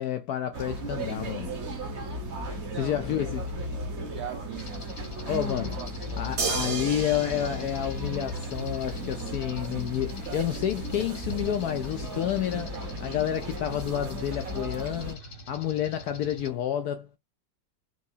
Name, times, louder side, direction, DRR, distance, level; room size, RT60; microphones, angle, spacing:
voice 1, 0.0-1.6 2.4-3.4 3.7-3.8 5.3-5.8 6.2-12.7 13.0-15.2 15.5-17.1, left 10 dB, 75° left, 0.8 m, -30 dB
sound 1, 0.5-15.1, equal, 40° right, 1.1 m, -35 dB
voice 2, 2.5-3.1 4.1-4.7 5.7-6.4, right 11 dB, 75° right, 0.9 m, -41 dB
sound 2, 4.5-16.5, left 1 dB, 40° left, 0.8 m, -45 dB
sound 3, 6.4-8.9 10.6-10.7, right 4 dB, 60° right, 1.7 m, -33 dB
4.5 x 3.0 x 2.7 m
omnidirectional pair, 2.1 m